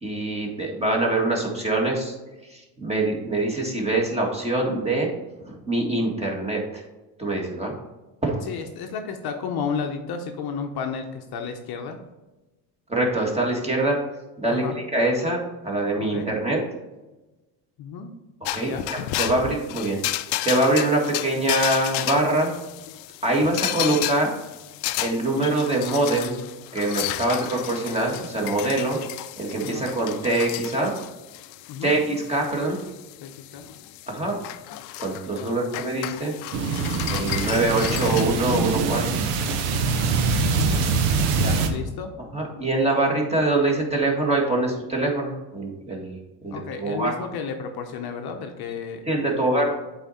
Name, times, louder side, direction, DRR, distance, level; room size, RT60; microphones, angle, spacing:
voice 1, 0.0-2.1 2.5-5.1 5.4-6.8 7.2-7.7 8.2-8.4 12.9-14.0 14.4-15.4 15.6-16.6 18.4-20.0 20.4-22.5 23.2-24.3 25.0-26.4 26.7-29.0 29.4-30.9 31.8-32.8 34.1-34.3 35.0-36.3 37.1-39.0 42.3-47.2 49.1-49.7, right 2 dB, 10° right, -1 dB, 1.7 m, -24 dB
voice 2, 8.5-12.0 14.5-14.7 16.0-16.3 17.8-18.1 18.6-18.8 29.6-29.9 31.7-31.9 33.2-33.7 35.4-35.6 38.5-38.8 40.5-40.9 41.3-42.1 42.5-42.6 46.5-49.0 49.6-49.8, left 6 dB, 50° left, 5 dB, 0.8 m, -32 dB
sound 1, 18.4-38.2, left 16 dB, 90° left, 0.6 m, -33 dB
sound 2, 36.5-41.7, right 4 dB, 80° right, 1.1 m, -23 dB
7.9 x 4.2 x 4.2 m, 1.1 s
cardioid pair, 120°, 50 cm